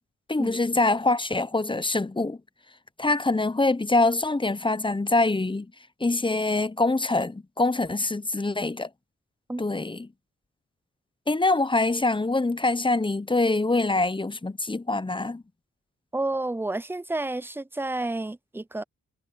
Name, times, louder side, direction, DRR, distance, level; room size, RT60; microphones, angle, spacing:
voice 1, 0.3-2.4 3.0-5.7 6.0-8.9 9.6-10.1 11.3-15.4, left 2 dB, 15° left, 0.9 m, -24 dB
voice 2, 16.1-18.8, right 2 dB, 5° right, 0.5 m, -30 dB
cardioid pair, 60°, 31 cm